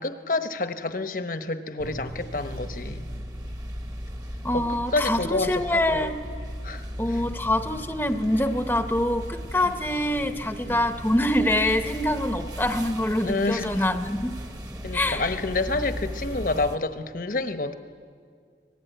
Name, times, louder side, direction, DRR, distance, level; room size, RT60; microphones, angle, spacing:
voice 1, 0.0-3.1 4.5-5.6 5.9-6.0 6.6-6.8 7.1-7.2 9.6-9.7 10.7-10.8 13.2-13.8 14.8-17.7, left 3 dB, 50° left, 9 dB, 1.1 m, -28 dB
sound 1, 1.8-16.8, equal, 20° right, 1.1 m, -37 dB
voice 2, 4.4-6.1 7.0-14.3 14.9-15.2, left 1 dB, 10° left, 7 dB, 0.9 m, -25 dB
25.0 x 20.0 x 9.3 m, 2.1 s
head